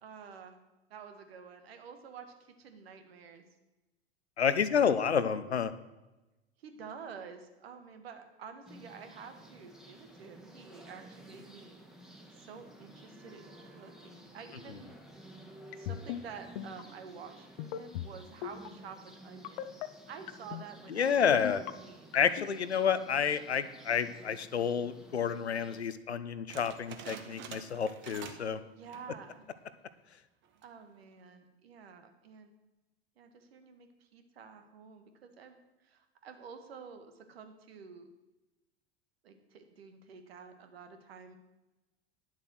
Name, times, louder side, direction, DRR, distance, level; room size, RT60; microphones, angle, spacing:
voice 1, 0.0-0.6 0.9-3.4 4.7-5.2 6.6-11.8 12.3-14.9 15.7-19.8 20.1-22.2 28.8-29.5 30.6-32.5 33.2-35.6 35.8-38.1 39.2-41.4, right 6 dB, 70° right, 7 dB, 1.6 m, -50 dB
voice 2, 4.4-5.7 20.9-21.6 22.1-28.6, left 7 dB, 85° left, 13 dB, 0.7 m, -29 dB
sound 1, 8.7-25.8, right 1 dB, ahead, 1.5 m, -54 dB
sound 2, 15.7-16.2 16.6-16.8 17.6-18.1 18.4-18.7 19.4-19.9 20.3-20.6 21.3-21.7 22.1-22.5, left 13 dB, 55° left, 0.7 m, -37 dB
sound 3, 26.5-28.6 28.8-29.2 29.7-29.8 30.4-30.8, right 7 dB, 35° right, 1.2 m, -47 dB
9.9 x 7.3 x 6.2 m, 1.0 s
figure-of-eight pair, 85°, 32 cm